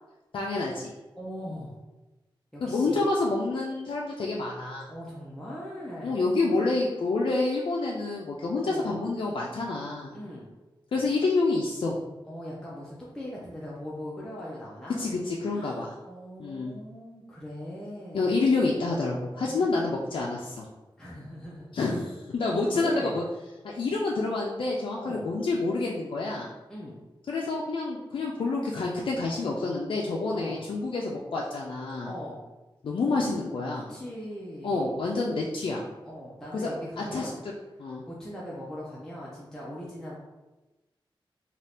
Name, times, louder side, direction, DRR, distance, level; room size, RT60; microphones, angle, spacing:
voice 1, 0.3-0.9 2.6-4.9 6.0-10.1 10.9-12.0 15.0-15.9 16.4-16.8 18.1-20.7 21.7-23.2 23.6-26.5 27.3-32.1 32.8-33.9 34.6-35.9 36.5-36.7 37.0-37.3 37.8-38.0, left 3 dB, 70° left, -3 dB, 0.4 m, -28 dB
voice 2, 1.2-1.8 2.5-3.0 4.9-6.2 8.6-8.9 10.1-10.5 12.2-15.0 15.5-18.3 19.4-20.1 21.0-21.7 22.7-23.2 25.0-25.3 26.7-27.0 30.3-30.6 32.0-32.4 33.9-34.9 36.0-37.4 38.1-40.2, equal, 5° left, -6 dB, 0.5 m, -40 dB
2.7 x 2.4 x 3.3 m, 1.1 s
wide cardioid pair, 105°, 9 cm